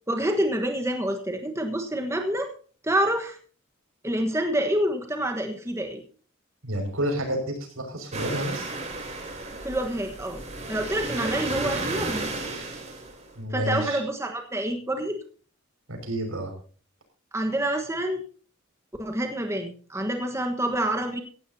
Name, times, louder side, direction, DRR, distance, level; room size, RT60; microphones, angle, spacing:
voice 1, 0.1-2.5 2.8-3.4 4.0-6.0 9.6-10.4 10.7-12.3 13.5-15.2 17.3-18.2 19.0-21.2, right 1 dB, 15° right, 4 dB, 1.3 m, -27 dB
voice 2, 6.6-8.7 13.4-14.0 15.9-16.5, equal, 85° right, 4 dB, 5.8 m, -29 dB
sound 1, 8.1-13.3, right 2 dB, 35° right, 3.4 m, -33 dB
16.5 x 15.5 x 2.8 m, 0.40 s
head